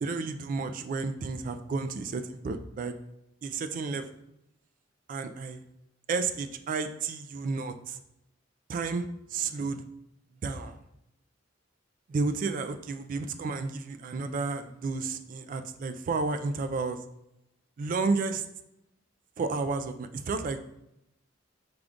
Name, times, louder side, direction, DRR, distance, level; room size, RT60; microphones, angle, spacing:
voice 1, 0.0-2.9 3.4-4.0 5.1-5.6 6.1-8.0 8.7-9.8 10.4-10.8 12.1-17.0 17.8-18.4 19.4-20.6, right 4 dB, 45° right, 9 dB, 0.3 m, -31 dB
5.0 x 2.3 x 3.7 m, 0.84 s
head